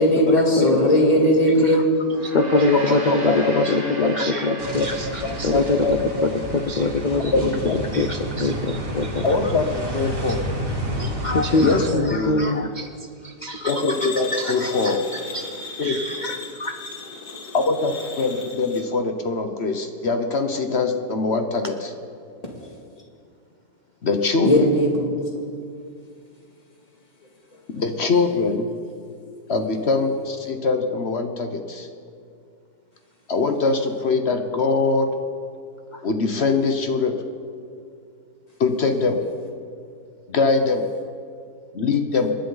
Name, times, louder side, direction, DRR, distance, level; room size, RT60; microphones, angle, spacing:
voice 1, 0.0-1.8 24.4-25.1, equal, 25° left, -2 dB, 2.4 m, -17 dB
voice 2, 0.6-0.9 2.3-5.1 5.4-6.0 6.7-7.3 7.9-9.3 11.0-12.9 13.4-13.7 14.3-14.9 15.3-15.4 15.8-16.3 16.6-16.7, left 3 dB, 70° left, 6 dB, 0.4 m, -23 dB
Gong, 2.0-6.6, right 1 dB, 65° right, 2.4 m, -36 dB
voice 3, 2.5-4.9 5.2-6.4 7.3-7.8 9.2-9.7 9.9-10.4 11.6-12.4 13.7-15.1 15.8-16.0 17.5-21.9 24.0-24.7 27.7-28.7 29.5-31.9 33.3-35.1 36.0-37.1 38.6-39.2 40.3-40.8 41.7-42.3, left 3 dB, 45° left, 6 dB, 1.1 m, -23 dB
sound 1, 4.6-11.9, right 1 dB, 35° right, 2.3 m, -30 dB
sound 2, 13.7-18.8, left 4 dB, 85° left, 2.2 m, -37 dB
28.5 x 10.5 x 4.0 m, 2.4 s
omnidirectional pair, 1.7 m